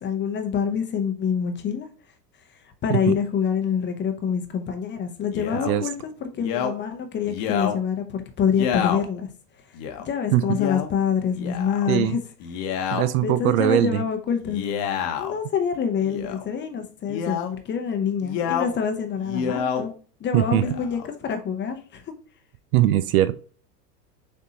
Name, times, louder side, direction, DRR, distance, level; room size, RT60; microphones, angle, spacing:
voice 1, 0.0-1.9 2.8-9.3 10.0-12.2 13.2-14.7 15.2-19.9 20.2-22.1, left 7 dB, 25° left, 0.7 m, -26 dB
Male speech man speaking, 5.3-5.7 6.4-6.7 7.2-7.7 8.5-9.0 9.7-10.0 10.5-10.9 11.3-11.9 12.4-13.0 14.4-15.4 16.0-16.4 17.1-17.5 18.2-18.7 19.2-19.8 20.5-21.1, left 8 dB, 50° left, 1.0 m, -28 dB
voice 2, 11.9-12.2 12.9-14.0 20.3-20.6 22.7-23.3, right 13 dB, 60° right, 0.6 m, -20 dB
6.5 x 2.7 x 2.8 m
hypercardioid pair, 100°, 48 cm